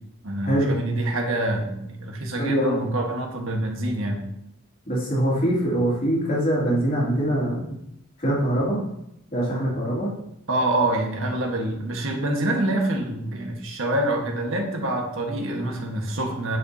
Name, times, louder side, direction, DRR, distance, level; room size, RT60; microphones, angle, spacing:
voice 1, 0.2-4.2 10.5-16.6, right 1 dB, 75° right, 1 dB, 1.4 m, -26 dB
voice 2, 2.4-2.9 4.9-7.7 8.2-8.8 9.3-10.1, right 1 dB, 40° left, -6 dB, 2.8 m, -23 dB
9.9 x 5.2 x 2.8 m, 0.80 s
head